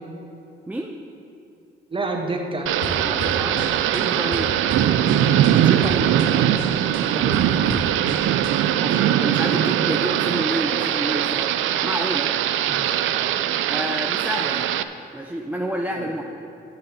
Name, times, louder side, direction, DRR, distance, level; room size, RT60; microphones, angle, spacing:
voice 1, 0.7-1.0 3.0-4.5 7.1-8.0 8.8-11.5 11.8-12.3 13.7-14.7 15.1-16.2, right 1 dB, 10° right, 1 dB, 0.6 m, -29 dB
voice 2, 1.9-2.7 5.6-6.4 8.9-9.3 12.6-13.0 15.9-16.1, right 2 dB, 25° right, 2 dB, 1.4 m, -30 dB
Thunder / Rain, 2.7-14.8, right 11 dB, 80° right, 0.4 m, -21 dB
sound 1, 2.8-4.0 4.3-5.5 5.8-6.3 6.6-8.5, left 1 dB, 90° left, 1.8 m, -33 dB
7.9 x 6.9 x 8.1 m, 2.6 s
cardioid pair, 90°, 20 cm